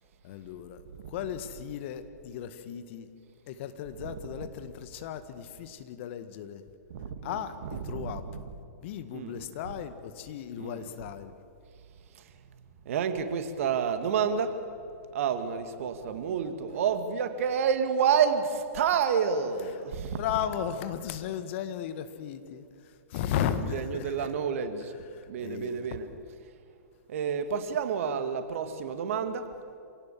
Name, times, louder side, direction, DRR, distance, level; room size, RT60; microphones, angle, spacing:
voice 1, 0.2-3.1 3.5-6.6 7.2-8.2 8.8-11.4 19.6-19.7 20.1-24.3 24.9-26.0, left 9 dB, 45° left, 1.7 m, -36 dB
voice 2, 6.9-7.3 7.9-8.4 9.1-9.4 10.6-10.8 12.9-14.5 15.1-20.2 23.4-24.9 25.3-26.1 27.1-29.5, right 7 dB, 55° right, 2.1 m, -29 dB
27.0 x 17.5 x 7.5 m
figure-of-eight pair, 110°, 9 cm